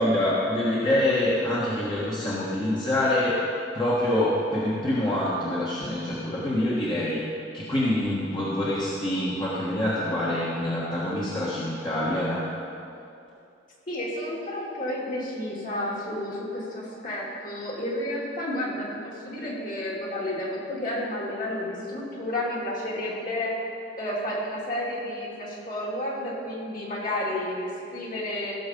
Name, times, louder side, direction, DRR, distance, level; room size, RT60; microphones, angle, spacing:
voice 1, 0.0-3.4 3.7-7.2 7.5-12.4, left 1 dB, 25° left, -7 dB, 1.4 m, -25 dB
voice 2, 13.9-23.6 24.0-28.5, left 1 dB, 50° left, -5 dB, 2.9 m, -31 dB
16.0 x 7.1 x 5.3 m, 2.6 s
head